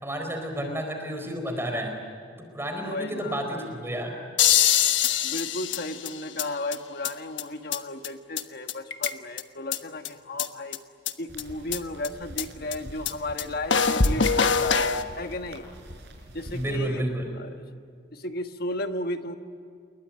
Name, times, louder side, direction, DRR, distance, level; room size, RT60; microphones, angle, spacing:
voice 1, 0.0-2.0 2.5-4.2 16.5-17.3, right 1 dB, 15° right, 4 dB, 4.2 m, -31 dB
voice 2, 2.8-3.5 5.2-10.8 11.2-15.7 16.3-17.0 17.4-17.6 18.1-19.4, left 1 dB, 55° left, 7 dB, 1.4 m, -34 dB
sound 1, 4.4-6.4 6.7-6.8 7.0-7.1 7.4-7.5 7.7-7.8 8.0-8.1 8.4-8.5 8.7-9.4 9.7-9.8 10.1-10.2 10.4-10.5 10.7-10.8 11.1-11.2 11.4-11.5 11.7-11.8 12.0-12.1 12.4-12.5 12.7-12.8 13.1-13.2 13.4-13.5 13.7-15.0, left 7 dB, 75° left, 1.2 m, -23 dB
sound 2, 11.3-16.8, right 1 dB, 60° right, 6.1 m, -45 dB
29.0 x 22.0 x 8.9 m, 2.3 s
head